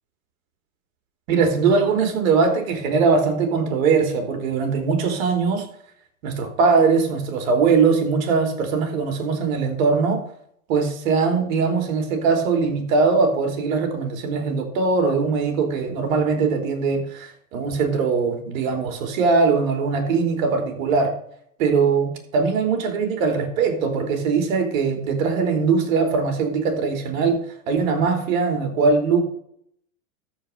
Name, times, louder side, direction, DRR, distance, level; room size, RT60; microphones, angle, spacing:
voice 1, 1.3-5.7 6.2-10.2 10.7-21.1 21.6-27.4 27.7-29.2, right 4 dB, 70° right, 5 dB, 3.6 m, -21 dB
13.5 x 5.1 x 6.8 m, 0.68 s
supercardioid pair, 125°, 42 cm